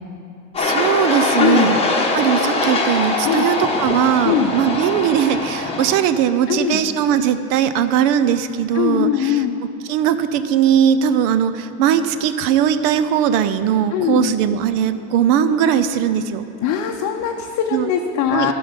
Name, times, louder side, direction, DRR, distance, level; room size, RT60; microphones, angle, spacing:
sound 1, 0.5-5.9, left 3 dB, 15° left, 1.1 m, -21 dB
voice 1, 0.6-1.8 2.1-9.4 9.9-16.5 17.7-17.9 18.3-18.5, right 9 dB, 60° right, 11 dB, 0.6 m, -19 dB
voice 2, 1.4-1.8 3.2-3.5 4.2-4.5 6.5-6.8 8.7-9.6 13.9-14.3 16.6-18.5, left 9 dB, 45° left, 2 dB, 0.7 m, -21 dB
12.0 x 5.5 x 5.8 m, 2.5 s
supercardioid pair, 125°, 42 cm